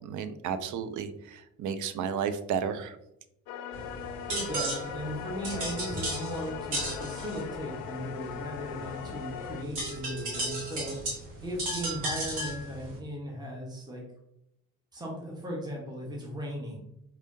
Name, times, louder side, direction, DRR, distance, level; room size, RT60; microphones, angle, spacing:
voice 1, 0.0-3.0, right 7 dB, 40° right, 11 dB, 0.5 m, -33 dB
sound 1, 3.5-9.6, left 9 dB, 45° left, 0.4 m, -39 dB
sound 2, 3.7-13.0, right 1 dB, 70° right, 1.4 m, -36 dB
voice 2, 4.3-11.0 11.4-14.0 14.9-16.8, equal, 10° right, -2 dB, 1.1 m, -37 dB
4.7 x 2.8 x 2.6 m, 0.83 s
figure-of-eight pair, 45°, 48 cm